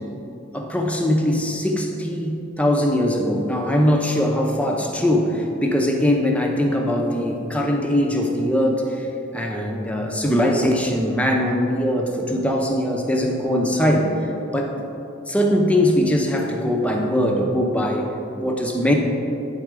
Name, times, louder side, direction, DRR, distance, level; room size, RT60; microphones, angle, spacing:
voice 1, 0.5-9.1 9.3-14.1 14.5-14.8 15.3-18.1 18.4-18.9, left 1 dB, 5° left, 1 dB, 0.6 m, -21 dB
9.3 x 4.1 x 4.7 m, 2.9 s
head